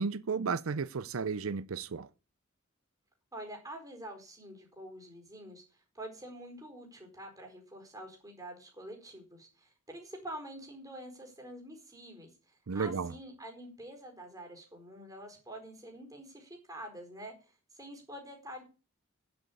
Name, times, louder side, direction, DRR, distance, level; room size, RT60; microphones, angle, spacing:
voice 1, 0.0-2.1 12.7-13.1, right 5 dB, 90° right, 0.6 m, -33 dB
voice 2, 3.3-17.3 17.7-18.6, right 1 dB, 15° right, 4.4 m, -47 dB
10.0 x 8.0 x 8.6 m
head